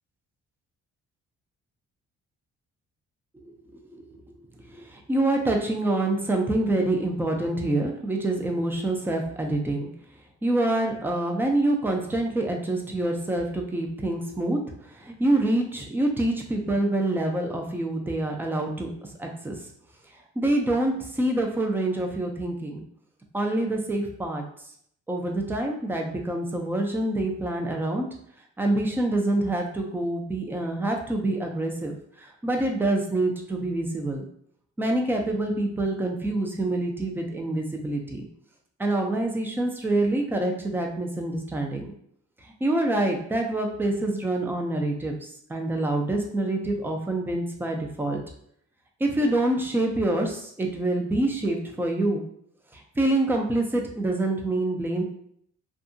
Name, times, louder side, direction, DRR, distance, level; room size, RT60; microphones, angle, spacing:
voice 1, 3.4-4.2 4.6-9.9 10.4-19.6 20.4-22.8 23.3-24.4 25.1-28.1 28.6-34.3 34.8-38.2 38.8-41.9 42.4-48.2 49.0-52.2 52.7-55.0, right 2 dB, 5° right, 2 dB, 0.4 m, -26 dB
2.6 x 2.4 x 2.5 m, 0.66 s
cardioid pair, 90°, 30 cm